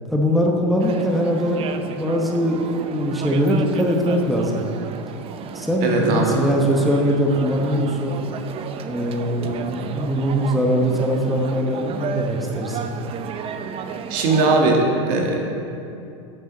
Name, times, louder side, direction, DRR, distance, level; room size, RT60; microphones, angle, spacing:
voice 1, 0.1-4.6 5.5-8.2 8.9-12.8, equal, ahead, -1 dB, 1.0 m, -21 dB
sound 1, 0.8-14.6, right 7 dB, 35° right, 0.5 m, -33 dB
voice 2, 5.8-6.4 14.1-15.4, right 3 dB, 55° right, 1 dB, 1.6 m, -19 dB
10.0 x 7.9 x 4.0 m, 2.6 s
hypercardioid pair, 100°, 17 cm